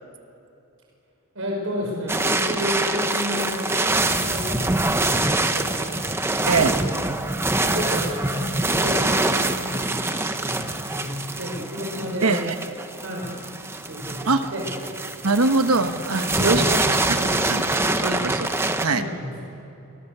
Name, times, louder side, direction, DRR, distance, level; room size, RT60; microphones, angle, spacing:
voice 1, 1.3-5.9 6.4-6.9 7.6-10.0 10.4-12.4 13.0-13.3 13.9-14.7 16.1-16.9 17.1-17.4 18.9-19.5, equal, 70° right, -1 dB, 6.0 m, -31 dB
sound 1, 2.1-18.9, right 2 dB, 10° right, 1.0 m, -25 dB
voice 2, 12.2-12.5 14.3-14.5 15.2-16.6 17.5-17.6 18.0-19.0, right 3 dB, 90° right, 8 dB, 1.3 m, -22 dB
27.5 x 20.5 x 6.9 m, 2.9 s
head